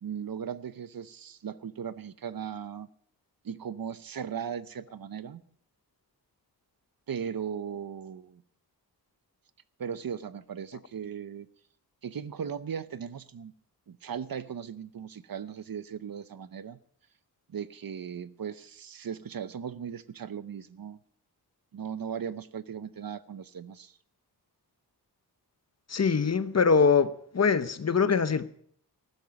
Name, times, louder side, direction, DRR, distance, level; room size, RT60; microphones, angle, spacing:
voice 1, 0.0-2.9 3.4-5.4 7.1-8.4 9.8-11.5 12.0-13.5 13.9-16.8 17.5-21.0 21.7-23.9, right 7 dB, 60° right, 0.7 m, -37 dB
voice 2, 25.9-28.5, left 5 dB, 40° left, 0.8 m, -23 dB
15.0 x 12.5 x 5.9 m
wide cardioid pair, 115°, 39 cm